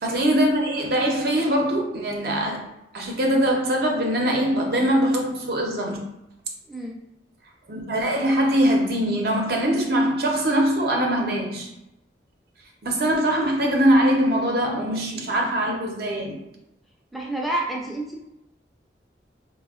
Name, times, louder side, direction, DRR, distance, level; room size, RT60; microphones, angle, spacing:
voice 1, 0.0-2.6 2.9-6.0 7.7-11.7 12.8-16.4, right 1 dB, 55° right, 0 dB, 0.5 m, -22 dB
voice 2, 17.1-18.2, right 1 dB, ahead, -2 dB, 0.4 m, -29 dB
4.1 x 2.1 x 2.3 m, 0.87 s
head